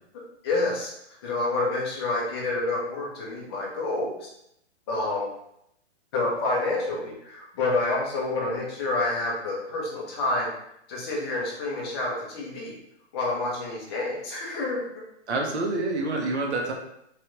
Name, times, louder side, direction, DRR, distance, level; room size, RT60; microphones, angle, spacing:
voice 1, 0.4-0.9 1.2-4.3 4.9-5.3 6.1-10.5 10.9-12.7 13.1-15.0, left 2 dB, 20° left, -3 dB, 0.6 m, -28 dB
voice 2, 15.3-16.7, right 2 dB, 65° right, 1 dB, 0.9 m, -27 dB
3.1 x 2.4 x 3.0 m, 0.76 s
hypercardioid pair, 155°, 35 cm